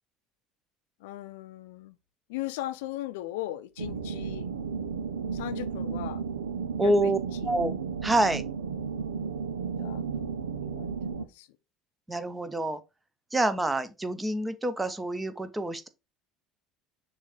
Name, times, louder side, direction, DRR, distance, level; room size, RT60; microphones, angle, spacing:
voice 1, 1.0-2.0 2.3-4.5 5.3-6.2 6.8-7.1 7.4-7.5 9.8-11.5, left 15 dB, 75° left, 0.6 m, -38 dB
sound 1, 3.8-11.2, right 6 dB, 90° right, 0.6 m, -33 dB
voice 2, 6.8-7.2 7.4-7.7 8.0-8.4 12.1-12.8 13.3-15.9, right 1 dB, 15° right, 0.9 m, -27 dB
6.7 x 2.8 x 4.9 m
hypercardioid pair, 70°, 0 cm